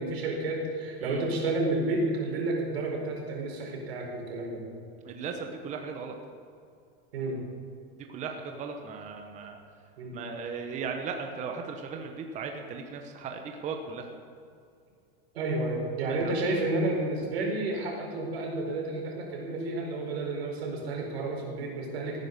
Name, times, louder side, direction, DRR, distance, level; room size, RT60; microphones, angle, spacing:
voice 1, 0.0-4.6 7.1-7.4 10.0-10.2 15.3-22.3, right 2 dB, 90° right, 0 dB, 4.5 m, -31 dB
voice 2, 5.0-6.1 8.1-9.6 10.1-14.1 16.2-16.3, right 5 dB, 25° right, 4 dB, 1.0 m, -37 dB
16.0 x 9.5 x 6.6 m, 2.4 s
supercardioid pair, 160°, 30 cm